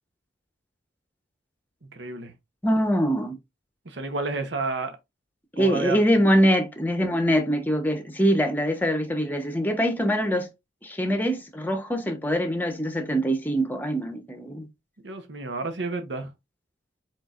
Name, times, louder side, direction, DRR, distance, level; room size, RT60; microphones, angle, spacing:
voice 1, 1.9-2.3 3.8-5.0 5.6-6.0 15.0-16.3, right 3 dB, 70° right, 0.9 m, -30 dB
voice 2, 2.6-3.4 5.6-10.5 10.8-14.7, equal, 10° left, 0.9 m, -23 dB
4.6 x 4.5 x 2.5 m
head